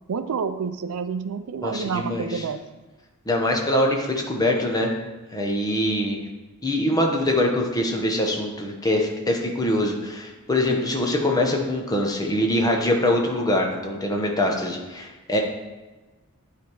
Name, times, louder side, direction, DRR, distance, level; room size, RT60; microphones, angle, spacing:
voice 1, 0.1-2.6, right 6 dB, 80° right, 11 dB, 0.4 m, -28 dB
voice 2, 1.6-2.4 3.3-4.9 5.3-6.2 6.6-15.4, left 1 dB, 15° left, 1 dB, 0.9 m, -23 dB
10.0 x 3.4 x 4.6 m, 1.2 s
head